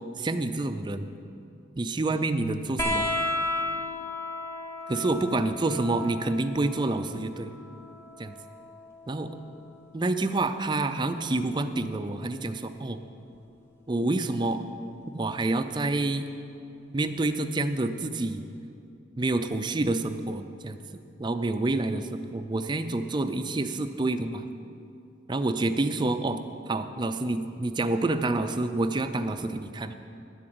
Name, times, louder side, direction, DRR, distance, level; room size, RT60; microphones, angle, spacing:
voice 1, 0.2-1.1 1.8-3.1 4.9-7.5 8.2-8.3 9.1-9.4 9.9-13.0 13.9-14.6 15.1-16.3 16.9-18.4 19.2-24.5 25.3-26.4 26.7-29.9, right 2 dB, 25° right, 9 dB, 0.4 m, -28 dB
sound 1, 2.8-9.9 11.2-12.0 13.3-13.4, left 2 dB, 15° left, 1.2 m, -34 dB
10.0 x 7.6 x 7.8 m, 2.6 s
head